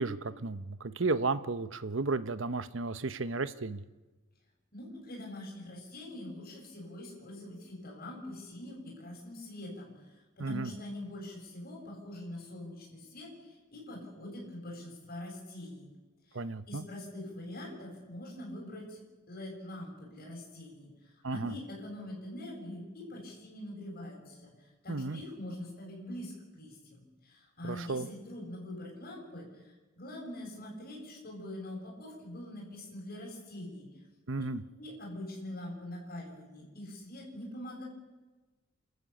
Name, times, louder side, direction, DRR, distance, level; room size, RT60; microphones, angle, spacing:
voice 1, 0.0-3.8 10.4-10.7 16.3-16.9 21.2-21.5 24.9-25.2 27.6-28.1 34.3-34.6, right 3 dB, 65° right, 13 dB, 1.0 m, -33 dB
voice 2, 4.7-15.9 16.3-16.4 16.7-33.9 34.4-34.5 34.8-37.8, left 1 dB, 45° left, -1 dB, 7.6 m, -44 dB
29.0 x 13.5 x 8.5 m, 1.2 s
head